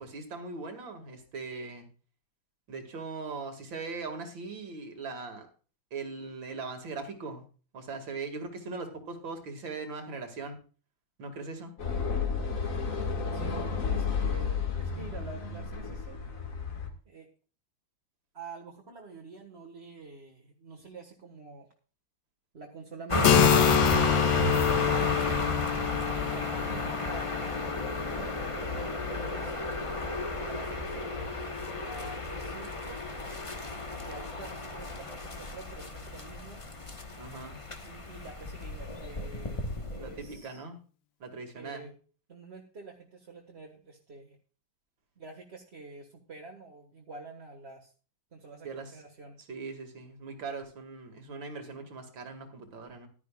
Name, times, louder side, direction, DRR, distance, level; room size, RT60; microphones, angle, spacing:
voice 1, 0.0-1.9 2.7-5.5 5.9-7.4 7.7-10.6 11.2-11.7 37.2-37.6 40.0-40.8 41.2-41.9 48.6-48.9 49.5-53.1, right 4 dB, 70° right, 6 dB, 2.9 m, -40 dB
sound 1, 11.8-16.9, left 5 dB, 40° left, 2.2 m, -32 dB
voice 2, 13.3-16.2 17.1-17.3 18.3-21.7 22.5-25.4 26.1-27.3 27.8-29.6 30.3-33.0 34.0-36.6 37.8-40.6 41.6-41.9 42.3-44.4 45.2-47.9 48.3-49.4, right 4 dB, 35° right, 0 dB, 1.9 m, -47 dB
sound 2, 23.1-40.3, left 2 dB, 20° left, 1.0 m, -32 dB
Keyboard (musical), 23.2-30.6, left 11 dB, 80° left, 1.7 m, -28 dB
15.0 x 12.5 x 2.4 m, 0.38 s
omnidirectional pair, 2.2 m